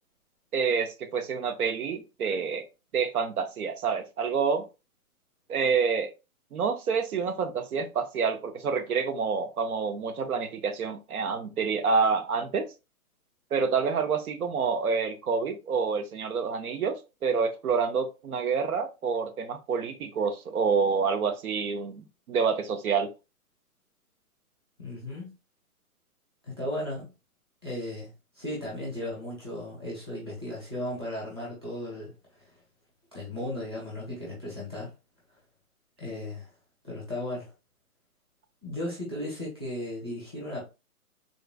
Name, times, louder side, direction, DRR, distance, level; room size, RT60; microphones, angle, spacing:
voice 1, 0.5-2.7 2.9-4.7 5.5-6.1 6.5-12.7 13.5-23.1, right 5 dB, 70° right, 0.6 m, -28 dB
voice 2, 24.8-25.3 26.4-27.1 27.6-28.1 28.3-32.5 33.1-34.9 36.0-36.5 36.8-37.5 38.6-40.6, left 1 dB, 20° right, 0.6 m, -36 dB
3.7 x 2.3 x 2.2 m
hypercardioid pair, 180°, 45 cm